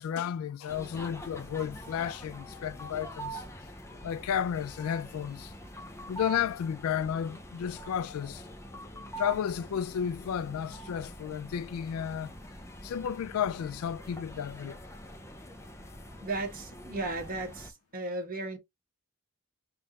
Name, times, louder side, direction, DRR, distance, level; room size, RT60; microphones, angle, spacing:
voice 1, 0.0-3.4 4.0-5.5 6.1-8.5 9.2-12.3 12.8-14.7, left 8 dB, 90° left, 0.3 m, -32 dB
sound 1, 0.7-17.7, right 1 dB, 15° left, 0.6 m, -45 dB
voice 2, 16.2-18.6, right 2 dB, 45° right, 1.2 m, -35 dB
3.6 x 2.5 x 4.0 m
head